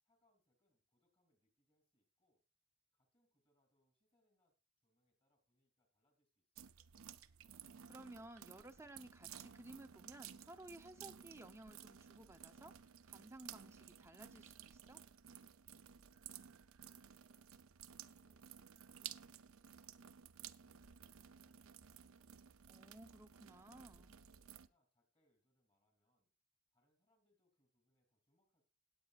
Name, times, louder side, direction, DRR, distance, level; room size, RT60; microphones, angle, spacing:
voice 1, 0.0-2.4 2.9-4.5 4.8-6.8 15.9-20.0 20.5-22.3 23.2-26.3 26.7-28.6, left 1 dB, 25° left, 5 dB, 3.1 m, -84 dB
sound 1, 6.6-24.7, right 9 dB, 65° right, 0.6 m, -56 dB
voice 2, 7.5-15.0 22.7-24.1, right 1 dB, 10° right, 6 dB, 0.8 m, -57 dB
17.5 x 8.6 x 2.5 m, 0.29 s
head